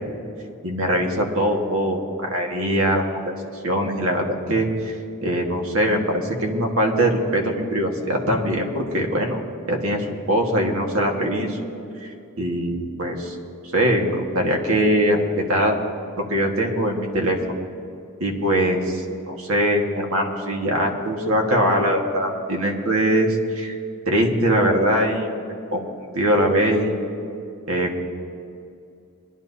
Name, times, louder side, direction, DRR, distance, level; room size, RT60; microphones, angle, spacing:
voice 1, 0.6-3.3 3.6-4.9 5.2-9.4 9.7-11.7 12.0-12.1 12.4-13.3 13.7-15.7 16.2-17.4 18.2-19.0 19.3-23.8 24.1-25.3 25.7-25.8 26.1-27.0 27.7-28.0, equal, 65° right, 1 dB, 1.6 m, -22 dB
22.5 x 11.0 x 2.8 m, 2.5 s
head